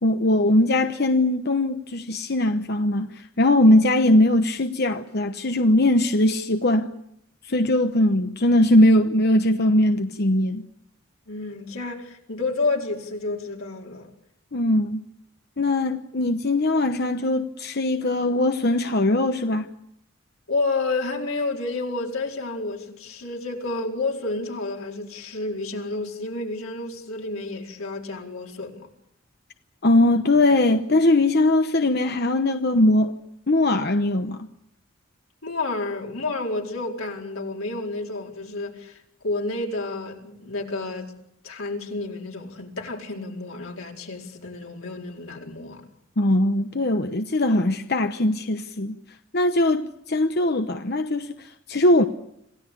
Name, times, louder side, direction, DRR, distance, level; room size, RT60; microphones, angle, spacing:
voice 1, 0.0-6.9 7.4-10.6 14.5-15.0 15.6-19.7 29.8-33.2 33.5-34.5 46.2-49.0 49.3-52.1, left 1 dB, 50° left, 1.0 m, -20 dB
voice 2, 11.3-14.1 20.5-28.9 35.4-41.1 41.4-45.8, left 3 dB, 90° left, 4.5 m, -30 dB
27.0 x 16.5 x 8.4 m
head